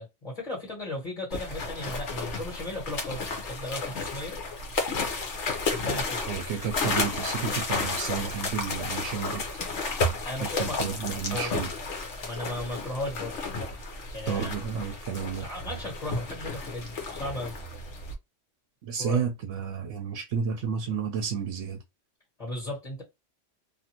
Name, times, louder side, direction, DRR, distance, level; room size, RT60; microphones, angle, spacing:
voice 1, 0.0-4.4 5.6-6.3 10.2-10.9 11.3-11.6 12.2-13.4 14.1-14.5 15.4-17.5 19.0-19.2 22.4-23.0, left 1 dB, 35° left, 1.5 m, -36 dB
sound 1, 1.3-18.1, left 3 dB, 70° left, 1.1 m, -32 dB
voice 2, 6.3-9.4 10.4-11.7 14.3-15.5 18.8-21.8, right 6 dB, 75° right, 0.9 m, -31 dB
2.7 x 2.5 x 2.8 m
omnidirectional pair, 1.3 m